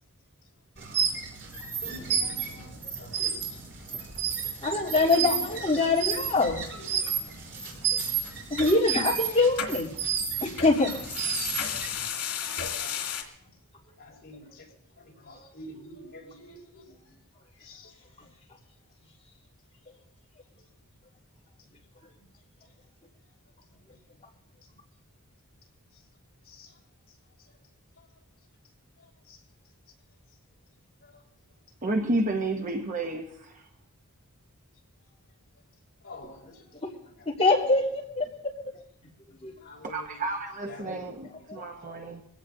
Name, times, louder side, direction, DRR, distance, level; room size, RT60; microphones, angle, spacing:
sound 1, 0.8-12.0, right 7 dB, 55° right, 5.6 m, -32 dB
voice 1, 1.4-4.6 5.0-6.2 6.7-7.8 8.5-8.6 12.5-13.6 14.0-17.2 17.5-18.4 18.7-19.0 19.9-20.0 20.6-20.8 21.6-21.7 22.5-22.9 23.2-24.0 24.6-24.7 25.9-26.1 26.4-27.6 28.0-28.2 29.0-29.9 30.3-30.4 30.7-30.8 31.0-31.2 31.7-31.8 35.0-37.5 39.6-40.2 40.6-42.0, left 2 dB, 45° left, 5.9 m, -50 dB
Thunder, 1.8-6.7 6.9-7.0 7.2-7.8 8.3-9.5, right 1 dB, ahead, 6.4 m, -52 dB
voice 2, 4.6-6.6 7.9-8.0 8.5-9.9 10.4-10.9 36.8-36.9 37.2-38.3 39.4-39.5 41.5-41.6, left 3 dB, 30° left, 3.4 m, -24 dB
sound 2, 8.6-8.7 9.6-9.7 10.6-13.2, left 8 dB, 85° left, 2.7 m, -33 dB
voice 3, 31.8-33.6 39.8-42.2, right 2 dB, 35° right, 1.0 m, -31 dB
23.5 x 16.5 x 2.7 m
head